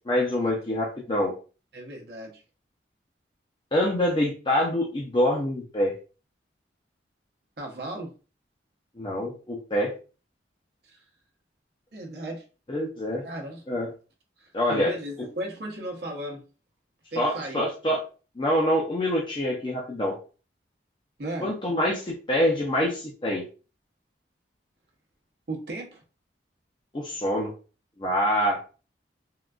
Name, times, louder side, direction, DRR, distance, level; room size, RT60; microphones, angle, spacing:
voice 1, 0.1-1.3 3.7-5.9 9.0-9.9 12.7-13.2 13.7-13.9 14.5-14.9 17.2-18.0 18.4-20.2 21.4-23.4 26.9-27.5 28.0-28.7, left 1 dB, 25° left, -2 dB, 0.5 m, -25 dB
voice 2, 1.7-2.4 7.6-8.1 10.8-11.0 11.9-12.4 13.2-13.6 14.4-16.4 17.1-17.6 21.2-21.5 25.5-26.0, right 1 dB, 60° right, 0 dB, 0.7 m, -36 dB
3.7 x 2.3 x 2.3 m, 0.35 s
head